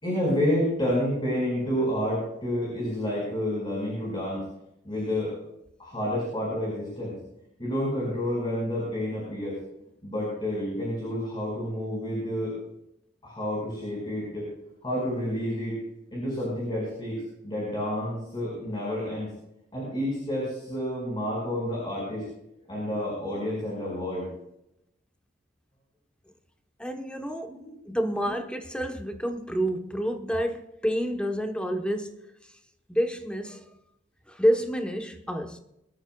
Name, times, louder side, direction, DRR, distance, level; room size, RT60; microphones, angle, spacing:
voice 1, 0.0-4.5 4.8-5.3 5.8-7.1 7.6-9.6 10.0-12.5 13.2-14.4 14.8-15.8 16.1-17.2 17.4-19.3 19.7-22.2 22.7-24.3 27.6-27.7, equal, 25° left, 5.3 m, -29 dB
voice 2, 26.8-27.6 27.9-32.3 32.9-33.7 34.3-35.6, equal, 5° left, 1.0 m, -28 dB
23.0 x 13.0 x 2.3 m
head